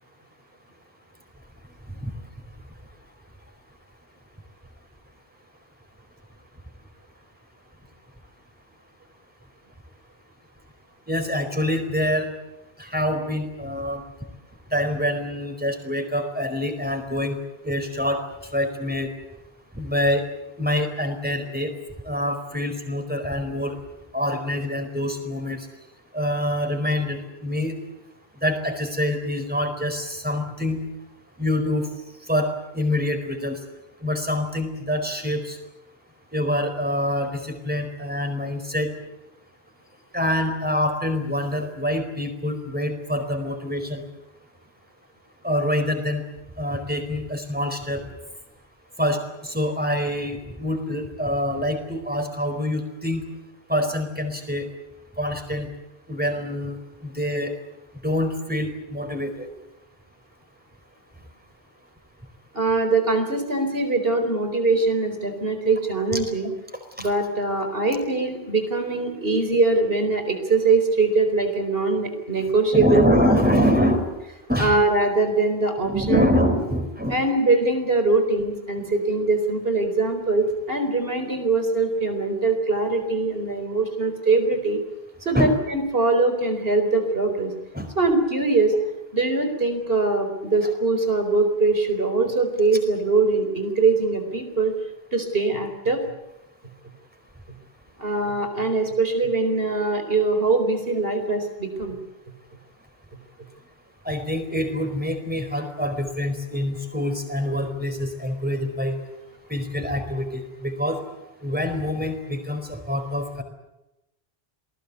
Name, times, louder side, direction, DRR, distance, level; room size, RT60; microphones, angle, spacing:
voice 1, 11.1-12.3 12.8-14.0 14.7-17.4 17.6-18.2 18.5-19.1 19.7-20.2 20.6-21.7 22.1-23.7 24.1-25.7 26.1-27.7 28.4-30.8 31.4-31.8 32.3-33.6 34.0-35.6 36.3-38.9 40.1-44.0 45.4-46.2 46.6-48.0 49.0-49.2 49.4-53.2 53.7-54.7 55.2-55.7 56.1-56.8 57.0-57.5 58.0-59.5 67.0-67.1 72.7-74.1 74.5-74.7 75.8-77.2 85.3-85.5 87.7-87.9 104.0-109.0 109.5-111.0 111.4-113.4, left 1 dB, 10° right, 6 dB, 4.5 m, -25 dB
voice 2, 62.5-66.5 67.0-73.0 73.8-73.9 74.6-76.3 77.1-84.8 85.2-87.5 88.0-88.7 89.1-94.7 95.1-96.0 98.0-102.0, right 3 dB, 65° right, 7 dB, 4.7 m, -22 dB
27.5 x 20.0 x 8.3 m, 0.94 s
omnidirectional pair, 1.0 m